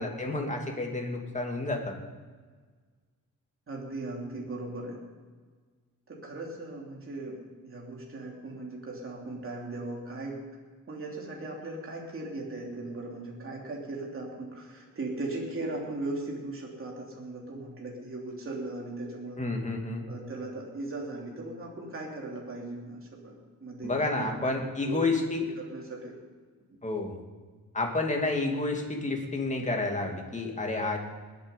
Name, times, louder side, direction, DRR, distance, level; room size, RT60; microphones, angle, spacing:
voice 1, 0.0-1.9 19.4-20.1 23.8-25.4 26.8-27.2 27.7-31.0, left 2 dB, 20° left, 1 dB, 2.5 m, -30 dB
voice 2, 3.7-5.0 6.1-10.4 10.9-19.4 20.1-24.4 24.8-25.1 25.6-26.2 26.7-26.8, right 2 dB, 35° right, -2 dB, 3.1 m, -38 dB
20.5 x 8.3 x 5.5 m, 1.5 s
cardioid pair, 120°, 35 cm